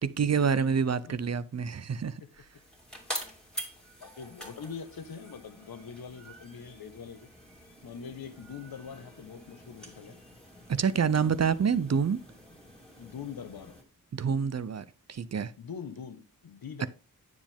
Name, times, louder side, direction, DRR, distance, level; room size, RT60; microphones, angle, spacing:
voice 1, 0.0-2.2 10.7-12.2 14.1-15.5, right 6 dB, 45° right, 0.7 m, -27 dB
sound 1, 2.1-13.8, equal, ahead, 2.4 m, -46 dB
voice 2, 4.0-7.3 7.8-10.2 13.0-13.8 15.6-16.9, left 6 dB, 90° left, 1.2 m, -43 dB
9.6 x 7.3 x 3.6 m
wide cardioid pair, 140°, 35 cm